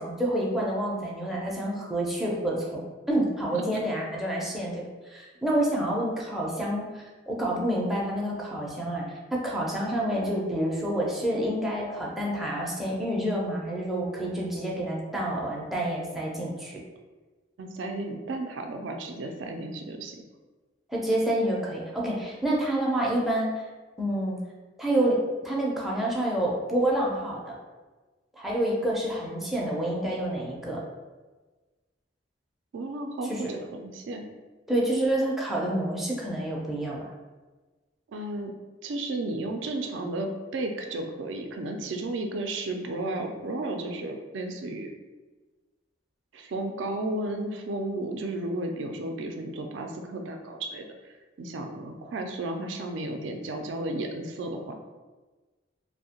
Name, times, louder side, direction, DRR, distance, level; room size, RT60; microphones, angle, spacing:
voice 1, 0.0-9.0 9.3-16.8 20.9-23.6 24.0-24.4 24.8-27.6 28.3-30.8 33.3-33.4 34.7-37.0, right 1 dB, ahead, -5 dB, 0.4 m, -28 dB
voice 2, 17.6-20.2 32.7-34.3 38.1-38.5 38.8-44.9 46.3-50.8 51.4-54.8, right 2 dB, 70° right, 4 dB, 0.4 m, -33 dB
2.7 x 2.1 x 2.8 m, 1.3 s
head